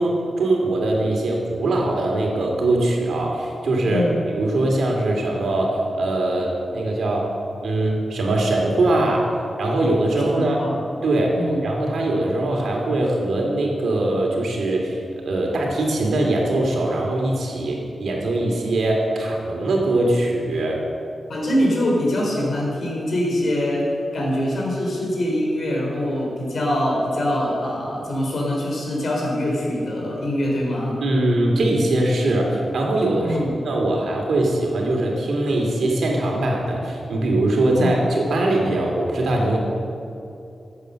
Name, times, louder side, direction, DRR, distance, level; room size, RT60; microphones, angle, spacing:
voice 1, 0.0-4.0 4.4-7.3 7.6-9.3 9.6-10.6 11.0-11.4 11.6-20.8 31.0-33.4 33.6-39.6, right 2 dB, 75° right, -1 dB, 2.6 m, -21 dB
voice 2, 3.8-4.2 10.3-10.8 11.4-11.6 21.3-31.0 33.2-33.6 37.7-38.0, left 1 dB, 55° left, -2 dB, 3.6 m, -24 dB
14.5 x 8.4 x 6.5 m, 2.7 s
wide cardioid pair, 170°, 0 cm